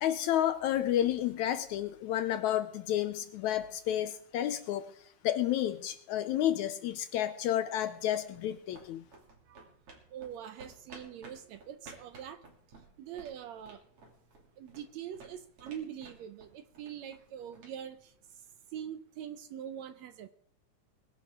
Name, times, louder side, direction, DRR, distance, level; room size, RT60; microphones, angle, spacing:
voice 1, 0.0-9.0, left 11 dB, 75° left, 11 dB, 1.8 m, -31 dB
sound 1, 7.9-18.7, right 3 dB, 45° right, 3.4 m, -56 dB
voice 2, 10.1-12.4 13.0-13.8 14.6-18.1 18.7-20.3, right 9 dB, 75° right, 11 dB, 1.7 m, -43 dB
21.5 x 11.0 x 3.6 m, 0.65 s
omnidirectional pair, 3.8 m